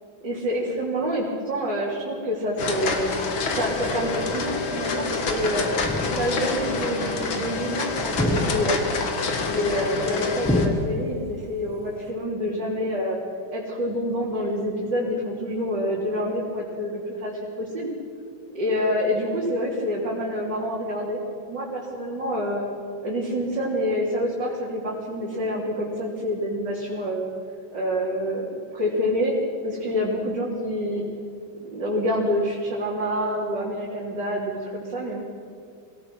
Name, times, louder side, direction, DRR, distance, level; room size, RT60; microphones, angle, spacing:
voice 1, 0.2-3.1 3.5-5.7 6.0-8.9 9.4-13.2 13.5-17.3 17.6-17.9 18.5-21.2 21.5-22.6 23.0-27.3 27.7-28.5 28.7-29.3 29.6-31.1 31.6-35.2, equal, 60° right, -6 dB, 3.9 m, -27 dB
sound 1, 2.6-10.7, left 3 dB, 85° left, 2.6 m, -27 dB
sound 2, 4.2-4.6 5.8-6.6 8.1-9.1 10.4-11.4, left 1 dB, 5° left, 1.3 m, -27 dB
25.0 x 17.5 x 6.2 m, 2.3 s
omnidirectional pair, 2.1 m